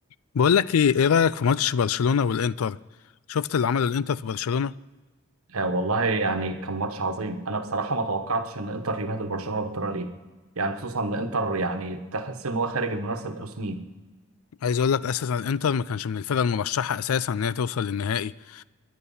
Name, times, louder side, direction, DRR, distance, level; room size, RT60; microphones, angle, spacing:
voice 1, 0.3-2.8 3.3-4.7 14.6-18.6, left 7 dB, 85° left, 0.4 m, -24 dB
voice 2, 5.5-10.1 10.5-13.8, right 3 dB, 90° right, 1.2 m, -28 dB
23.5 x 10.5 x 5.6 m
head